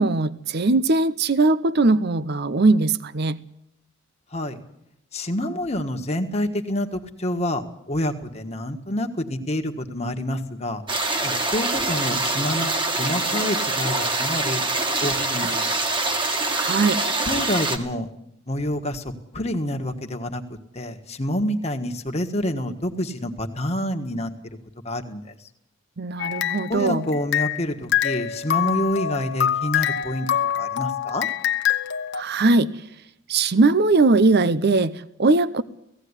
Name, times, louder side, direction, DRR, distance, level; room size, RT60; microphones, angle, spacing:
voice 1, 0.0-3.4 16.4-17.0 26.0-27.0 32.1-32.7 33.3-35.6, right 3 dB, 55° right, 0.7 m, -20 dB
voice 2, 5.1-7.6 7.9-10.8 11.2-14.6 15.0-15.6 17.3-18.1 18.5-19.0 19.3-20.4 20.7-24.3 24.8-25.2 26.7-30.3 30.6-31.3, left 1 dB, 35° left, 1.6 m, -27 dB
sound 1, 10.9-17.8, right 2 dB, 25° right, 1.9 m, -24 dB
sound 2, 26.2-27.7 27.9-32.2, left 10 dB, 60° left, 1.1 m, -25 dB
17.0 x 16.5 x 9.8 m
head